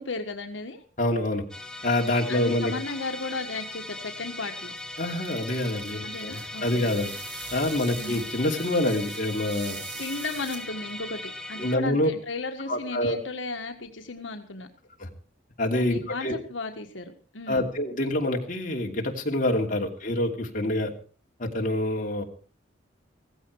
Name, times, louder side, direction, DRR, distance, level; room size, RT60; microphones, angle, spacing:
voice 1, 0.0-0.8 2.3-4.7 6.0-6.9 7.9-8.2 10.0-14.7 15.7-17.7, left 3 dB, 85° left, 5 dB, 1.6 m, -35 dB
voice 2, 1.0-1.4 1.8-2.7 5.0-7.1 7.5-9.8 11.6-12.1 12.7-13.2 15.0-15.1 15.6-16.3 17.5-20.9 21.4-22.2, left 1 dB, 45° left, 1 dB, 2.8 m, -26 dB
Musical instrument, 1.5-11.8, left 2 dB, 5° left, 1.4 m, -38 dB
sound 1, 4.6-11.0, right 5 dB, 85° right, 5.0 m, -43 dB
16.5 x 15.0 x 4.7 m, 0.39 s
head